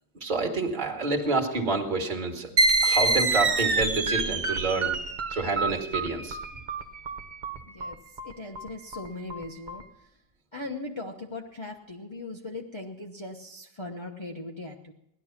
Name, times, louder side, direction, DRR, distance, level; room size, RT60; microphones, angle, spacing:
voice 1, 0.2-2.5 2.8-4.9 5.3-6.4, right 3 dB, 25° right, 3 dB, 2.0 m, -28 dB
sound 1, 2.6-9.8, right 3 dB, 45° right, 0.5 m, -27 dB
voice 2, 7.6-8.0 8.2-10.1 10.5-14.9, left 2 dB, 25° left, 0 dB, 0.6 m, -39 dB
17.5 x 12.0 x 5.9 m, 0.82 s
omnidirectional pair, 2.2 m